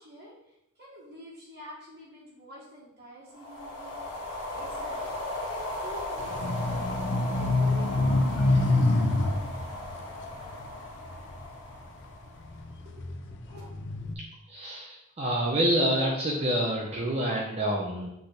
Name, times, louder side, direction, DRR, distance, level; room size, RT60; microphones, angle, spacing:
voice 1, 0.0-9.6 12.7-13.7, equal, 45° right, -9 dB, 1.6 m, -48 dB
sound 1, 3.3-12.8, left 1 dB, 85° left, 1.6 m, -37 dB
sound 2, 6.2-11.7 12.3-14.1, left 2 dB, 55° left, 0.6 m, -27 dB
voice 2, 14.5-18.1, right 1 dB, 30° right, -3 dB, 0.8 m, -27 dB
7.8 x 3.9 x 3.4 m, 0.84 s
head